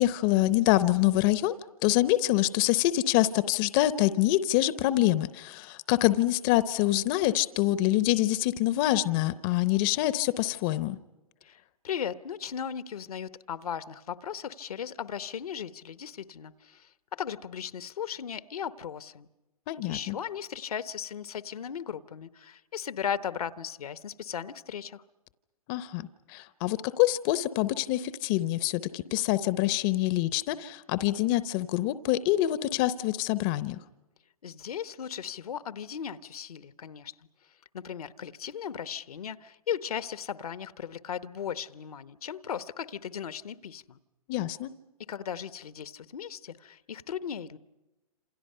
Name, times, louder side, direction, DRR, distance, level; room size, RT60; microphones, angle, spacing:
voice 1, 0.0-1.5 1.8-11.0 19.7-20.2 25.7-33.8 44.3-44.7, left 15 dB, 35° left, 15 dB, 0.8 m, -26 dB
voice 2, 11.8-19.3 19.8-25.0 34.4-37.1 37.7-44.0 45.1-47.6, left 8 dB, 75° left, 14 dB, 1.0 m, -37 dB
28.0 x 27.5 x 5.6 m, 1.0 s
hypercardioid pair, 130°, 19 cm